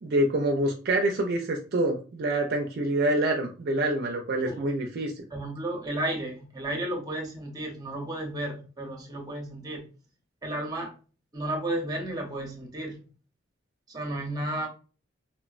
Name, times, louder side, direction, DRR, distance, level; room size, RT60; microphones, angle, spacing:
voice 1, 0.0-5.1, right 1 dB, 55° right, 0.4 m, -26 dB
voice 2, 5.3-9.9 10.4-10.9 11.3-13.0 13.9-14.7, right 1 dB, 20° right, 0.7 m, -33 dB
3.2 x 2.0 x 2.4 m
head